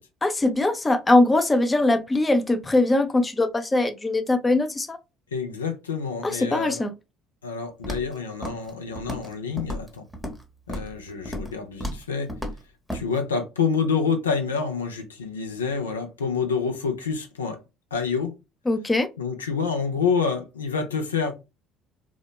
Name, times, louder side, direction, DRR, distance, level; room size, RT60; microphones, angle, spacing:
voice 1, 0.2-5.0 6.2-6.9 18.7-19.1, left 2 dB, 20° left, 0.5 m, -21 dB
voice 2, 5.3-6.8 7.4-10.0 10.7-12.3 12.9-17.6 17.9-18.3 19.2-21.3, left 5 dB, 90° left, 0.4 m, -27 dB
Walk footsteps, 7.8-8.1 8.4-8.7 9.0-9.3 9.6-10.4 10.7-10.9 11.2-11.5 11.8-12.0 12.3-12.6 12.9-13.0, equal, ahead, 0.9 m, -32 dB
2.8 x 2.1 x 2.3 m
hypercardioid pair, 55°, 0 cm